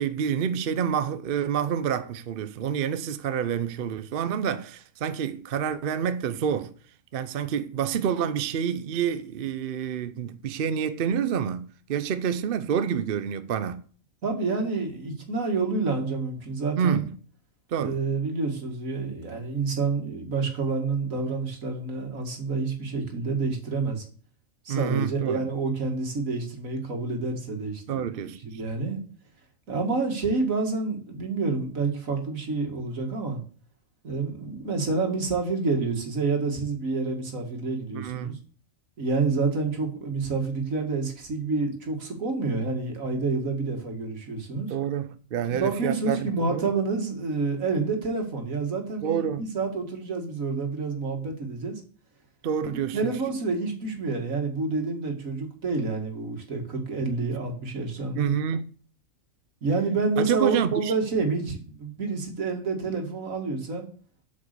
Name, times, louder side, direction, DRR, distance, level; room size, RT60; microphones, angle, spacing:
voice 1, 0.0-6.7 7.1-13.8 16.8-17.1 17.7-18.0 24.7-25.5 27.9-28.6 37.9-38.4 44.7-46.6 49.0-49.5 52.4-53.1 58.1-58.7 60.2-60.9, right 8 dB, 55° right, 0.7 m, -28 dB
voice 2, 14.2-17.0 17.8-24.0 24.7-28.1 28.4-29.0 29.7-33.4 34.0-38.4 39.0-44.7 45.5-51.8 52.7-58.3 59.6-63.9, right 4 dB, 80° right, 2.4 m, -28 dB
8.2 x 5.3 x 6.7 m
omnidirectional pair, 1.4 m